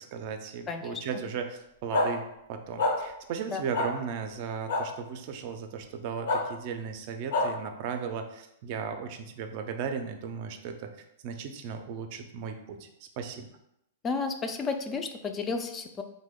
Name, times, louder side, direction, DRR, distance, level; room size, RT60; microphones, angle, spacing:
voice 1, 0.0-2.2 2.5-10.9 11.2-12.9 13.2-13.5, right 6 dB, 50° right, 6 dB, 0.4 m, -36 dB
voice 2, 0.7-1.0 3.5-3.6 14.0-16.0, left 4 dB, 20° left, 6 dB, 0.3 m, -32 dB
sound 1, 1.9-2.1 2.8-2.9 3.7-3.9 4.7-4.8 6.3-6.4 7.3-7.5, left 2 dB, 85° left, 0.9 m, -25 dB
2.9 x 2.1 x 3.5 m, 0.81 s
hypercardioid pair, 135°, 0 cm